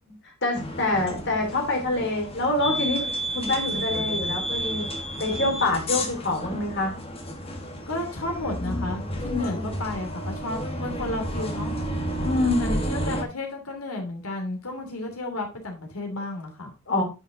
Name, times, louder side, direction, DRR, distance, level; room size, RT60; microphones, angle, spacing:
voice 1, 0.4-4.9 5.2-7.0 9.3-9.7 12.2-12.7 16.9-17.0, left 2 dB, 55° left, 1 dB, 3.1 m, -26 dB
sound 1, 0.5-13.2, equal, 25° left, 1.5 m, -31 dB
voice 2, 7.9-11.7 12.6-16.7, left 2 dB, 85° left, 3 dB, 2.8 m, -33 dB
9.5 x 5.7 x 3.8 m, 0.29 s
head